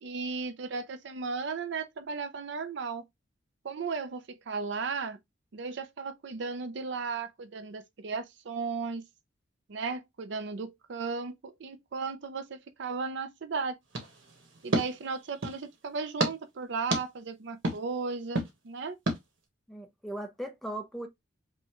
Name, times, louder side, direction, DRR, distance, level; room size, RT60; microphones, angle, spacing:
voice 1, 0.0-3.0 3.6-5.2 5.5-9.0 9.7-13.8 14.6-19.0, right 4 dB, 65° right, 0.5 m, -35 dB
sound 1, 13.9-15.6 16.2-16.3 16.9-17.0 17.6-17.8 18.3-18.5 19.1-19.2, right 2 dB, 85° right, 1.3 m, -31 dB
voice 2, 19.7-21.1, right 1 dB, ahead, 0.7 m, -38 dB
5.4 x 2.3 x 2.9 m
head